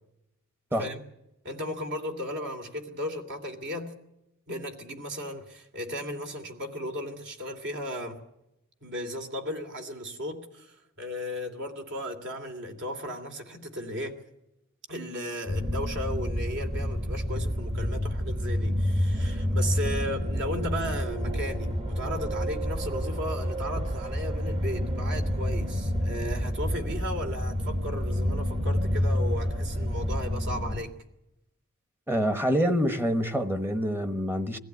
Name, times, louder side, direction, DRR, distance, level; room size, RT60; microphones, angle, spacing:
voice 1, 1.4-3.9 4.5-8.2 8.8-14.2 14.9-30.9, equal, 55° right, 2.8 m, -35 dB
sound 1, 15.5-30.8, equal, 30° right, 1.6 m, -29 dB
voice 2, 32.1-34.6, equal, 10° right, 1.2 m, -26 dB
22.0 x 15.5 x 9.3 m
head